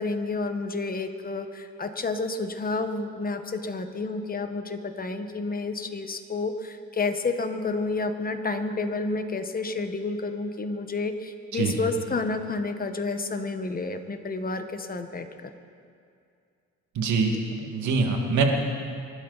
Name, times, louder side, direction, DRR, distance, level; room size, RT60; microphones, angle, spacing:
voice 1, 0.0-15.5, left 3 dB, 30° left, 7 dB, 1.3 m, -30 dB
voice 2, 17.0-17.3 17.6-18.4, right 4 dB, 75° right, 2 dB, 2.1 m, -24 dB
25.0 x 12.0 x 4.1 m, 2.4 s
cardioid pair, 90°, 30 cm